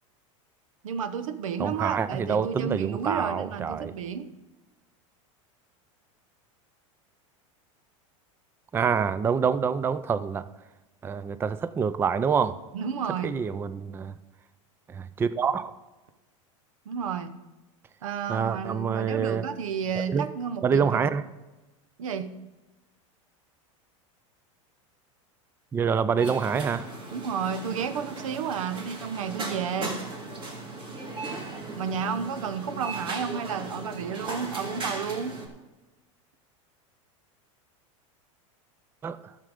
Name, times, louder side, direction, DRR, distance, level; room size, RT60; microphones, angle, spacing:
voice 1, 0.8-4.3 12.7-13.4 16.9-17.3 18.0-21.1 22.0-22.3 27.1-30.0 31.8-35.4, right 7 dB, 90° right, 11 dB, 0.9 m, -31 dB
voice 2, 1.6-3.9 8.7-10.4 11.0-12.5 13.2-14.1 14.9-15.7 18.3-19.5 20.0-20.3 20.6-21.2 25.7-26.9 39.0-39.2, right 6 dB, 15° right, 14 dB, 0.4 m, -26 dB
sound 1, 26.2-35.5, right 2 dB, 30° right, 2.5 m, -37 dB
11.5 x 6.7 x 5.0 m, 1.1 s
supercardioid pair, 120°, 17 cm